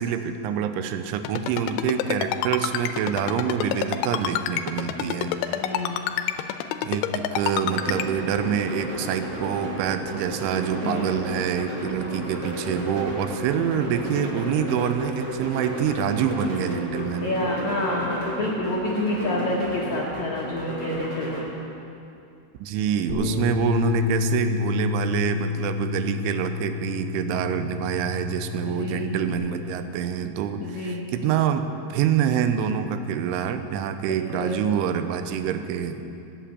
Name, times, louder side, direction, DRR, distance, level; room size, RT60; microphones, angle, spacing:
voice 1, 0.0-5.9 6.8-17.3 22.6-36.0, right 8 dB, 85° right, 9 dB, 3.3 m, -26 dB
Ringtone, 1.3-8.1, left 10 dB, 90° left, 3.0 m, -28 dB
voice 2, 5.5-6.0 10.8-11.1 13.7-13.9 17.2-21.6 28.7-29.2 30.6-31.0 34.1-34.6, left 1 dB, 65° left, -4 dB, 1.8 m, -28 dB
sound 1, 7.7-21.4, equal, 30° right, 3.5 m, -33 dB
Bass guitar, 23.1-29.3, left 5 dB, 60° right, 7.1 m, -29 dB
18.5 x 8.5 x 8.5 m, 2.6 s
omnidirectional pair, 5.4 m